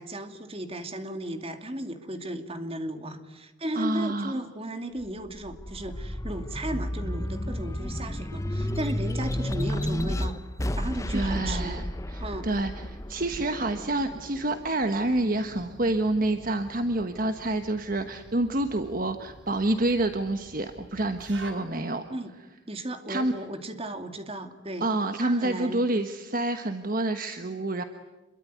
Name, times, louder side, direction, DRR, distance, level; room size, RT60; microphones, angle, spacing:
voice 1, 0.0-10.4 10.7-11.8 12.2-12.5 22.1-22.3 22.7-24.9 25.2-25.8, right 1 dB, 30° right, 7 dB, 2.5 m, -35 dB
voice 2, 3.7-4.4 11.1-22.0 23.1-23.3 24.8-27.8, right 2 dB, 45° right, 8 dB, 1.3 m, -28 dB
sound 1, 5.0-15.8 16.3-17.5, left 1 dB, 15° left, 1.0 m, -32 dB
sound 2, 15.0-21.5, equal, 65° right, 4.5 m, -47 dB
27.5 x 23.0 x 9.5 m, 1.1 s
head